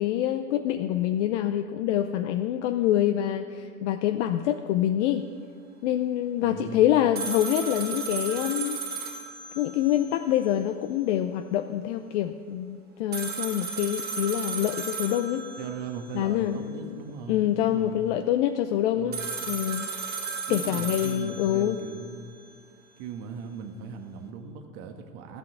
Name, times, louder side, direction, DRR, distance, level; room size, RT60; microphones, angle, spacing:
voice 1, 0.0-5.2 5.8-8.8 9.6-15.4 16.1-16.8 17.3-19.2 19.5-19.9 20.5-21.8, left 12 dB, 55° left, 8 dB, 0.6 m, -26 dB
voice 2, 6.4-7.0 15.6-18.1 18.9-19.4 20.5-22.3 23.0-25.4, right 5 dB, 50° right, 4 dB, 1.5 m, -39 dB
sound 1, 7.2-10.2 10.5-10.6 13.1-16.1 19.1-22.1, right 5 dB, 20° right, 1.9 m, -35 dB
14.5 x 5.9 x 8.5 m, 2.1 s
hypercardioid pair, 105°, 43 cm